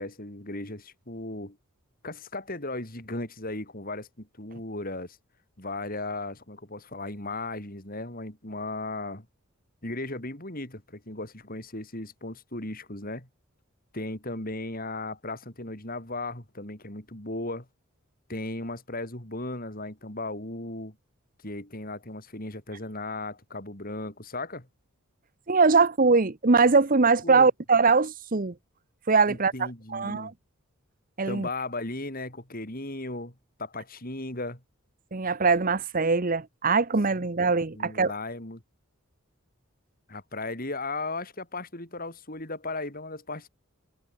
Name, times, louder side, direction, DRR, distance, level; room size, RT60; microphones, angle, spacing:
voice 1, 0.0-1.6 2.0-5.2 5.6-9.3 9.8-13.3 13.9-17.7 18.3-21.0 21.4-24.7 27.2-27.5 29.3-30.3 31.3-33.3 33.6-34.6 37.1-37.2 37.7-38.6 40.1-43.5, left 2 dB, 40° left, 5.4 m, -36 dB
voice 2, 25.5-28.5 29.1-29.5 29.9-30.3 31.2-31.5 35.1-38.1, right 4 dB, 40° right, 0.9 m, -22 dB
head